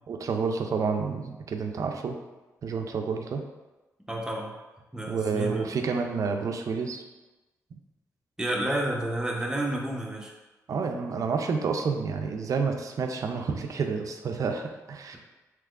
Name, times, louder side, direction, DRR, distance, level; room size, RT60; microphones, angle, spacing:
voice 1, 0.1-2.2 2.6-3.4 5.1-7.0 10.7-15.2, right 5 dB, 60° right, 4 dB, 0.4 m, -29 dB
voice 2, 4.1-4.5 4.9-5.6 8.4-10.3, right 1 dB, 10° right, -1 dB, 0.7 m, -30 dB
3.4 x 3.0 x 2.4 m, 1.1 s
cardioid pair, 60°, 6 cm